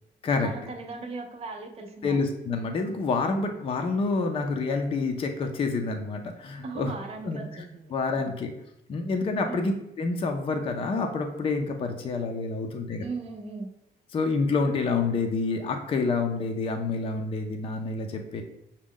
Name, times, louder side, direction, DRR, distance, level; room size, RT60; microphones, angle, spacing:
voice 1, 0.4-2.2 6.6-8.3 9.4-9.8 13.0-13.7, right 3 dB, 35° right, 3 dB, 0.5 m, -38 dB
voice 2, 2.0-6.9 7.2-7.4 7.9-8.5 8.9-9.7 10.0-13.0 14.1-18.4, left 4 dB, 30° left, 4 dB, 0.4 m, -28 dB
6.0 x 2.2 x 3.6 m, 0.86 s
cardioid pair, 180°, 18 cm